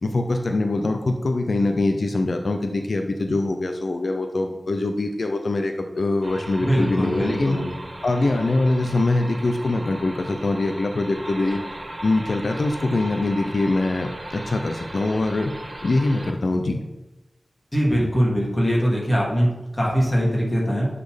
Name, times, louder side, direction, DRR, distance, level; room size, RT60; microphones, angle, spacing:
voice 1, 0.0-7.6 8.0-11.6 12.0-15.5 15.8-16.8, left 2 dB, 75° left, 4 dB, 0.7 m, -23 dB
sound 1, 6.2-16.3, right 1 dB, 45° right, 1.8 m, -37 dB
voice 2, 6.6-7.7 17.7-20.9, equal, 30° left, -4 dB, 2.8 m, -22 dB
10.5 x 4.3 x 5.2 m, 1.0 s
wide cardioid pair, 60°, 0 cm